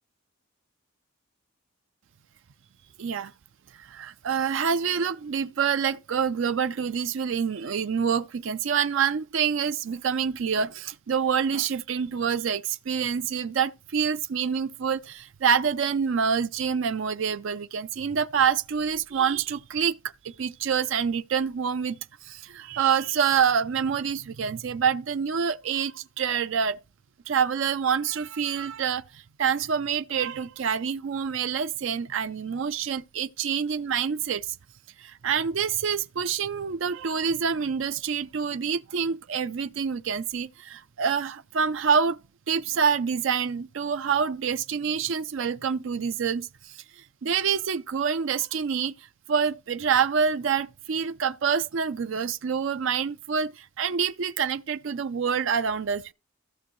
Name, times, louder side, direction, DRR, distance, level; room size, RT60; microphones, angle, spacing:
voice 1, 3.0-3.3 3.8-20.0 20.2-22.0 22.2-26.8 27.3-34.6 35.0-42.2 42.5-46.7 47.2-48.9 49.3-56.1, right 7 dB, 65° right, 0.4 m, -26 dB
15.0 x 6.0 x 3.1 m
head